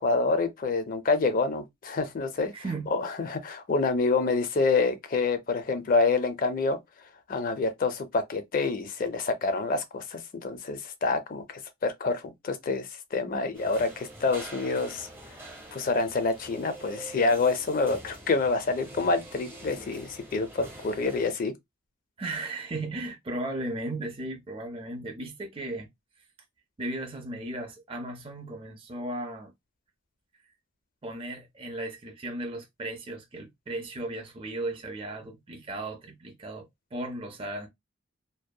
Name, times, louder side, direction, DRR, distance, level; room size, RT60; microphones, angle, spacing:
voice 1, 0.0-2.5 2.9-6.8 7.3-15.1 15.7-21.5, left 3 dB, 40° left, 0.4 m, -27 dB
voice 2, 2.5-2.9 22.2-25.9 26.8-29.5 31.0-36.7 36.9-37.7, right 2 dB, 25° right, 0.4 m, -36 dB
sound 1, 13.5-21.3, right 1 dB, 10° right, 0.8 m, -45 dB
2.7 x 2.2 x 2.2 m
head